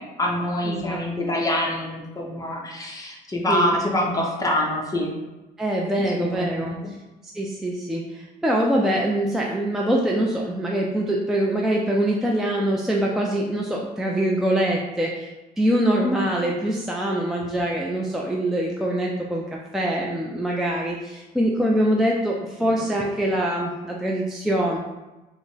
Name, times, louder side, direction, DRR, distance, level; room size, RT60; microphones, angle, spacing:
voice 1, 0.0-5.1 6.0-6.9 22.6-22.9, left 1 dB, 20° left, -1 dB, 0.7 m, -26 dB
voice 2, 0.7-1.0 3.5-3.8 5.6-6.8 7.4-15.3 15.6-19.4 19.7-24.8, right 1 dB, ahead, -2 dB, 0.3 m, -24 dB
3.2 x 2.1 x 3.9 m, 1.1 s
cardioid pair, 110°, 17 cm